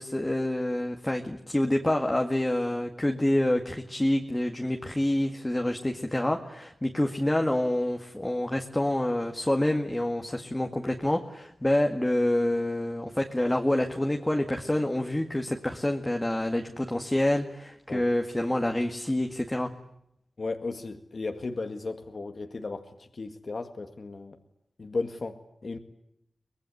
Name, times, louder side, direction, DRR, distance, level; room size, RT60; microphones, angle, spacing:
voice 1, 0.0-19.7, left 1 dB, 15° left, 3 dB, 2.0 m, -27 dB
voice 2, 20.4-22.9 23.1-24.4 24.8-25.8, left 3 dB, 55° left, 6 dB, 1.9 m, -35 dB
24.0 x 20.5 x 9.6 m, 0.77 s
wide cardioid pair, 70°, 0 cm